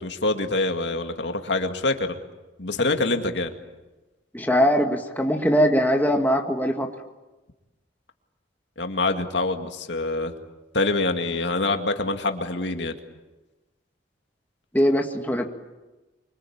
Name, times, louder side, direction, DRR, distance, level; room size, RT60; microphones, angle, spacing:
voice 1, 0.0-2.2 2.6-3.5 8.8-10.3 10.7-13.0, left 2 dB, 70° left, 5 dB, 2.1 m, -25 dB
voice 2, 4.3-6.9 14.7-15.5, equal, 10° left, 3 dB, 1.9 m, -21 dB
25.5 x 24.5 x 8.7 m, 1.1 s
head